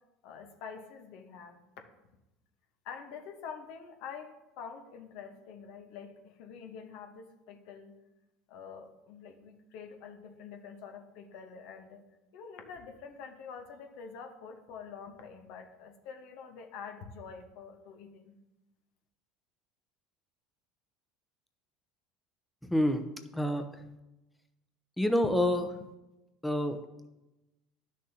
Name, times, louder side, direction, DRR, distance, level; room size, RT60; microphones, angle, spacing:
voice 1, 0.2-1.6 2.8-7.9 8.5-12.0 12.3-18.4, left 6 dB, 70° left, 4 dB, 1.0 m, -46 dB
voice 2, 22.6-23.0 23.3-23.6 25.0-25.7 26.4-26.8, left 1 dB, 5° left, 6 dB, 0.7 m, -27 dB
11.0 x 6.2 x 2.8 m, 0.98 s
hypercardioid pair, 90°, 0 cm